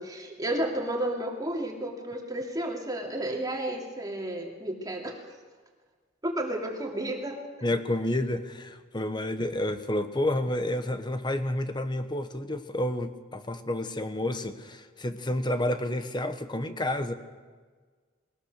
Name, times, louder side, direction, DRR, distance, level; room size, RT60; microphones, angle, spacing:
voice 1, 0.0-5.2 6.2-7.4, right 1 dB, 20° right, 1 dB, 2.5 m, -32 dB
voice 2, 7.6-17.1, left 1 dB, 20° left, 9 dB, 1.2 m, -30 dB
20.5 x 19.5 x 6.6 m, 1.5 s
head